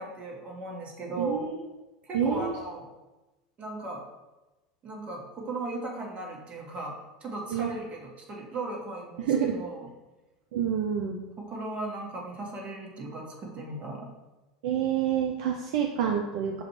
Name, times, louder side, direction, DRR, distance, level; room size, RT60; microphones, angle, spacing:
voice 1, 0.0-1.4 2.0-2.9 3.6-4.0 4.8-9.9 11.5-14.1, right 2 dB, 35° right, 0 dB, 1.3 m, -37 dB
voice 2, 1.2-1.6 2.1-2.5 7.5-7.7 9.2-9.6 10.5-11.2 14.6-16.6, right 8 dB, 65° right, 2 dB, 0.5 m, -27 dB
6.9 x 2.5 x 3.1 m, 1.1 s
hypercardioid pair, 90°, 4 cm